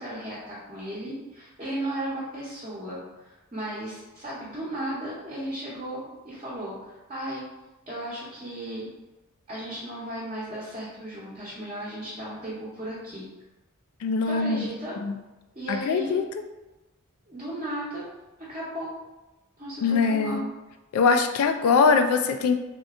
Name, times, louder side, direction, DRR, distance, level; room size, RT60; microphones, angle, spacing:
voice 1, 0.0-7.4 7.9-8.9 9.5-13.3 14.3-15.0 15.5-16.2 17.3-18.1 18.4-18.9 19.6-20.4, right 1 dB, 30° right, -10 dB, 0.9 m, -35 dB
voice 2, 14.0-14.7 15.0-15.1 15.7-16.2 19.8-20.4 20.9-22.5, left 5 dB, 70° left, 8 dB, 0.3 m, -22 dB
3.3 x 2.7 x 3.6 m, 1.0 s
head